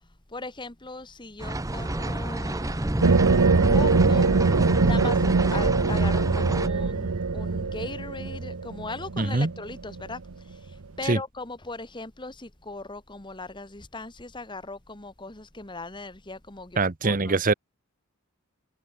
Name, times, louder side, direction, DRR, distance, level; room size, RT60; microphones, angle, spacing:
voice 1, 0.3-3.0 3.7-4.3 4.8-5.2 5.5-10.2 10.5-17.4, left 3 dB, 20° left, 1.7 m, -38 dB
sound 1, 1.4-6.7, right 1 dB, 15° right, 0.7 m, -28 dB
sound 2, 3.0-10.3, right 4 dB, 80° right, 0.8 m, -23 dB
voice 2, 9.2-9.5 11.0-11.2 16.8-17.5, right 3 dB, 35° right, 0.9 m, -23 dB
head